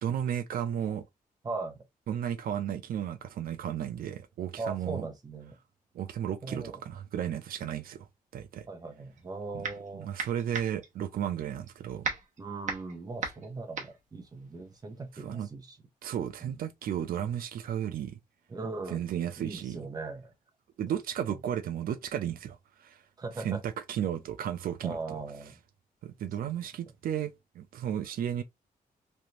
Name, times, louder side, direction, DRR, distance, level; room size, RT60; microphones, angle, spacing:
voice 1, 0.0-1.0 2.1-5.1 5.9-8.1 8.3-8.7 9.5-9.6 9.9-12.1 15.1-15.5 16.0-18.2 18.9-19.8 20.8-23.0 23.4-25.2 26.0-28.4, right 10 dB, 85° right, 0.4 m, -34 dB
voice 2, 1.4-1.8 4.6-5.6 6.4-6.8 8.7-10.1 12.4-15.8 16.4-16.5 18.5-19.0 19.4-20.3 21.3-21.4 23.2-23.6 24.8-25.6, right 3 dB, 25° right, 0.8 m, -39 dB
Sissors cutting air, 9.1-9.9 10.2-15.2, right 5 dB, 60° right, 1.0 m, -37 dB
3.2 x 2.5 x 2.8 m
wide cardioid pair, 150°, 15 cm